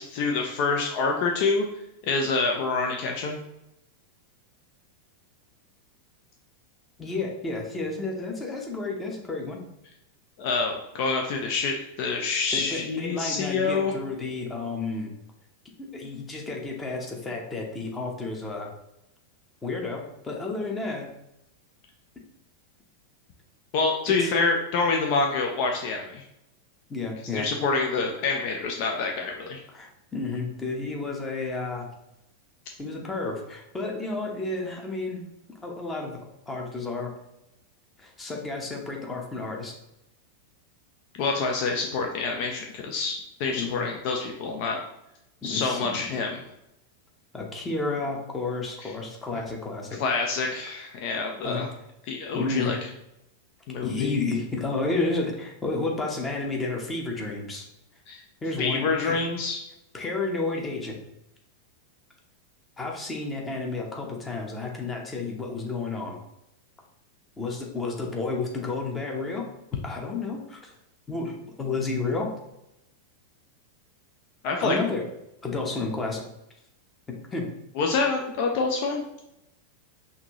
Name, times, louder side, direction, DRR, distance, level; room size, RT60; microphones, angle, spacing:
voice 1, 0.0-1.7 2.1-3.4 10.4-13.9 23.7-26.2 27.3-29.6 41.2-44.8 45.4-46.4 48.8-48.9 50.0-51.7 52.1-52.8 53.7-54.1 58.1-58.2 58.6-59.6 74.4-74.7 77.8-79.0, left 4 dB, 45° left, 1 dB, 0.6 m, -27 dB
voice 2, 7.0-9.6 12.5-15.1 15.8-18.7 19.6-21.1 24.2-24.3 26.9-27.5 29.7-31.9 32.8-35.2 35.6-36.2 36.5-37.1 38.0-39.7 43.5-43.8 45.4-46.2 47.3-50.0 51.4-51.6 52.3-52.7 53.8-57.6 58.4-59.2 59.9-61.0 62.8-66.2 67.4-69.5 69.8-70.7 71.1-72.3 74.6-75.0 75.4-76.3 77.3-77.5, left 3 dB, 15° left, 0 dB, 1.1 m, -31 dB
5.8 x 2.7 x 3.1 m, 0.86 s
figure-of-eight pair, 90°, 0 cm